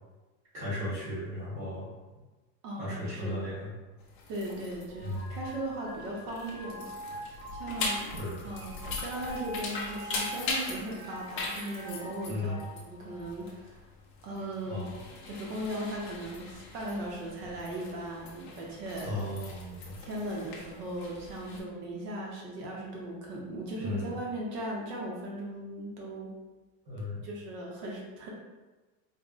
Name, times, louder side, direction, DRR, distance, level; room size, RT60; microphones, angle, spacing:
voice 1, 0.5-1.9 2.8-3.7 5.0-5.3 7.8-8.4 12.3-12.6 14.7-15.0 19.0-19.9 23.8-24.1 26.9-27.2, left 1 dB, 35° right, -9 dB, 1.3 m, -36 dB
voice 2, 2.6-3.5 4.3-8.1 8.4-12.6 12.9-13.8 14.2-14.9 15.3-19.2 20.0-26.3 27.2-28.3, right 1 dB, 65° right, -2 dB, 1.0 m, -38 dB
sound 1, 4.0-21.6, left 3 dB, 35° left, 0.4 m, -41 dB
sound 2, 4.9-13.3, equal, ahead, 0.7 m, -45 dB
4.2 x 2.0 x 3.7 m, 1.2 s
supercardioid pair, 175°, 50 cm